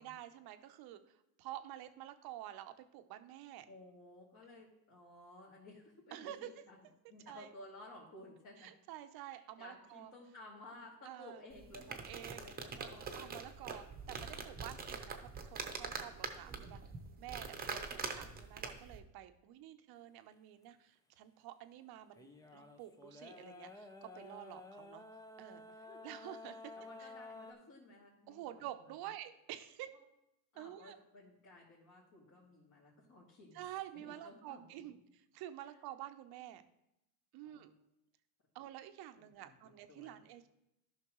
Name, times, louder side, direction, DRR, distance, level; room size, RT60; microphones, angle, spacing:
voice 1, 0.0-3.7 6.1-6.5 7.3-7.5 8.6-10.1 11.1-11.4 11.9-12.5 12.8-12.9 13.1-16.8 17.2-25.0 25.4-25.6 26.0-26.7 27.0-27.1 28.3-29.9 30.6-31.0 33.5-36.6 37.3-37.7 38.5-40.5, right 13 dB, 50° right, 9 dB, 0.8 m, -49 dB
voice 2, 3.7-6.8 7.1-8.7 9.3-13.3 14.4-14.5 16.1-16.5 25.7-26.0 26.7-28.7 30.5-33.6 33.9-34.9 37.4-37.7 39.2-39.6 39.9-40.2, left 2 dB, 40° left, -6 dB, 2.5 m, -56 dB
sound 1, 11.5-19.0, right 5 dB, 20° right, 1.0 m, -44 dB
sound 2, 22.2-27.5, left 2 dB, 10° left, 0.6 m, -52 dB
12.5 x 5.9 x 3.1 m, 0.85 s
supercardioid pair, 110°, 47 cm